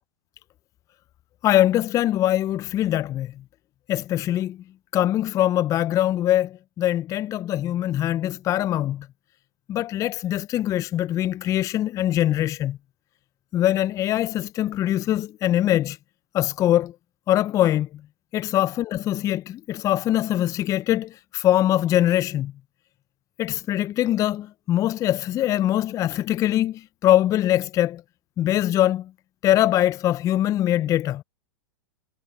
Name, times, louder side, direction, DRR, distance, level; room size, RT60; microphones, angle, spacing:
voice 1, 1.4-3.3 3.9-4.6 4.9-9.1 9.7-12.8 13.5-16.0 16.3-16.9 17.3-17.9 18.3-22.5 23.4-28.0 28.4-29.1 29.4-31.2, left 13 dB, 25° left, 0.3 m, -22 dB
hypercardioid pair, 115°, 14 cm